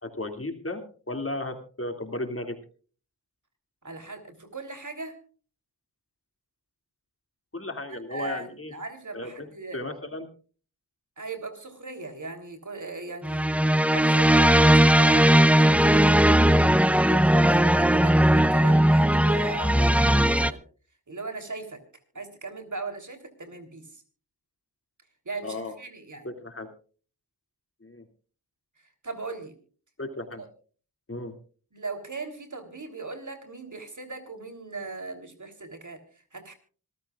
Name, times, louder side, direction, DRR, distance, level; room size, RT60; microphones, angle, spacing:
voice 1, 0.0-2.6 7.5-8.7 9.1-10.3 25.4-25.7 26.2-26.7 27.8-28.0 30.0-30.4 31.1-31.3, left 2 dB, 35° left, 6 dB, 2.4 m, -35 dB
voice 2, 3.8-5.2 8.1-9.8 11.2-13.5 13.9-16.8 17.1-20.6 21.1-21.8 22.2-24.0 25.3-26.3 28.8-29.5 30.4-30.5 31.7-36.5, right 3 dB, 50° right, 7 dB, 3.4 m, -38 dB
sound 1, 13.2-20.5, right 1 dB, 5° right, 0.6 m, -19 dB
25.5 x 14.0 x 2.4 m, 0.40 s
cardioid pair, 40°, 40 cm